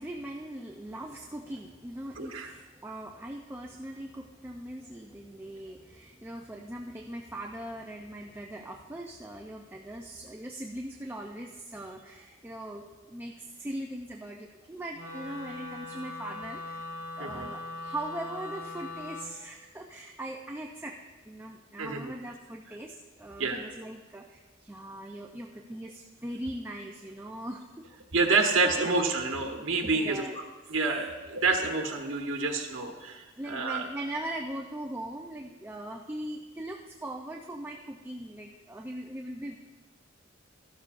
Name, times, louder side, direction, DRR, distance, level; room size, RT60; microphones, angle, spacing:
voice 1, 0.0-16.8 17.2-21.0 21.2-27.9 28.3-28.9 29.9-30.4 33.0-39.6, right 1 dB, 10° right, 1 dB, 0.5 m, -40 dB
voice 2, 2.2-2.5 17.2-17.5 21.8-22.1 23.4-23.6 28.1-30.4 30.7-33.9, right 3 dB, 90° right, 2 dB, 1.1 m, -28 dB
Wind instrument woodwind instrument, 14.9-19.3, left 2 dB, 60° left, 2.1 m, -40 dB
13.5 x 12.0 x 2.5 m, 1.3 s
head